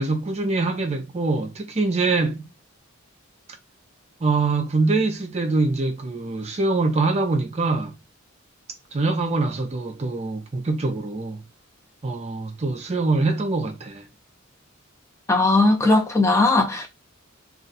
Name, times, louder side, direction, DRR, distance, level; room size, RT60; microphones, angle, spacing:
voice 1, 0.0-2.4 4.2-8.0 8.9-11.4 12.0-14.1, right 3 dB, 30° right, 0.5 m, -24 dB
voice 2, 15.3-16.9, left 2 dB, 15° left, 0.6 m, -18 dB
2.4 x 2.3 x 3.9 m
head